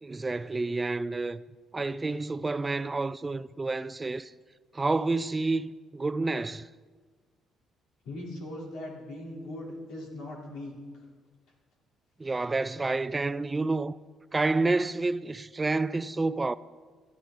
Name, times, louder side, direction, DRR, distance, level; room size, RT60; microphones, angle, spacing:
voice 1, 0.0-1.4 1.7-4.3 4.7-6.7 12.2-14.0 14.3-16.5, right 3 dB, 20° right, 0.3 m, -29 dB
voice 2, 8.0-10.7, left 1 dB, 80° left, 3.6 m, -39 dB
17.5 x 12.0 x 3.9 m
cardioid pair, 100°, 0 cm